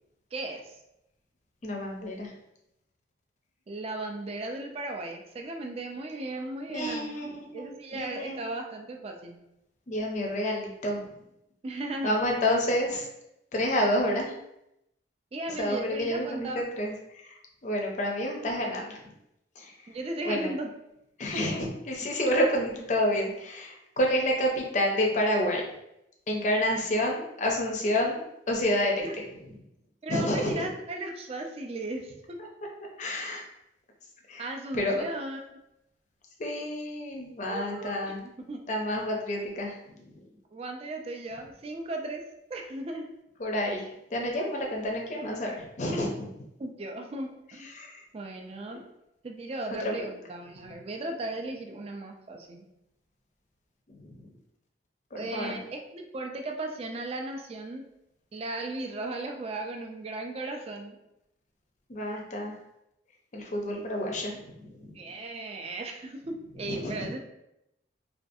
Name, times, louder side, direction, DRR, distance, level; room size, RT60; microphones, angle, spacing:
voice 1, 0.3-0.8 3.7-9.4 11.6-12.1 15.3-16.6 19.9-20.7 28.7-29.1 30.0-32.4 34.4-35.6 37.5-38.6 40.5-42.2 42.5-43.1 46.6-47.7 48.1-48.8 49.2-52.7 55.1-57.8 58.3-61.0 64.9-67.2, right 2 dB, 35° right, 3 dB, 0.3 m, -36 dB
voice 2, 1.6-2.3 6.7-8.5 9.9-11.0 12.0-13.1 13.5-14.3 15.6-17.2 17.6-19.0 19.6-19.7 20.2-20.5 21.2-25.6 26.3-29.1 30.1-30.7 33.0-33.4 34.3-34.5 34.7-35.0 36.4-38.2 38.7-40.0 43.4-46.3 47.7-48.0 49.8-50.1 53.9-54.3 55.1-55.6 61.9-62.5 63.3-65.0 66.7-67.1, left 1 dB, 40° left, 0 dB, 0.5 m, -29 dB
2.4 x 2.3 x 2.6 m, 0.83 s
head